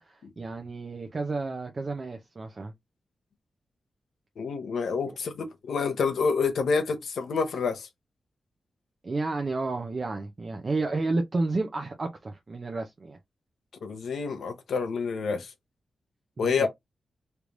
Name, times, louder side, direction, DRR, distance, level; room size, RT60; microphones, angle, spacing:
voice 1, 0.0-2.7 9.0-13.2 16.4-16.7, right 3 dB, 35° right, 0.5 m, -31 dB
voice 2, 4.4-7.9 13.8-15.5 16.4-16.7, left 5 dB, 90° left, 0.8 m, -28 dB
3.3 x 3.0 x 2.5 m
wide cardioid pair, 120°, 0 cm